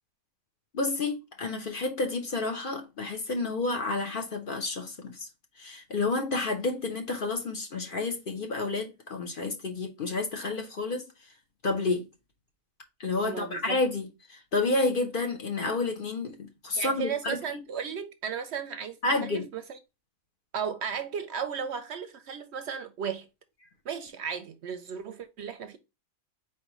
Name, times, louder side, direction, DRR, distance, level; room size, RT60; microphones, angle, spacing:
voice 1, 0.7-5.3 5.6-11.1 11.6-12.1 13.0-17.4 19.0-19.5, left 3 dB, 45° left, 0.8 m, -30 dB
voice 2, 13.2-13.8 16.8-19.8 20.5-23.3 23.8-25.8, right 7 dB, 65° right, 0.8 m, -35 dB
4.5 x 3.3 x 2.9 m
omnidirectional pair, 1.4 m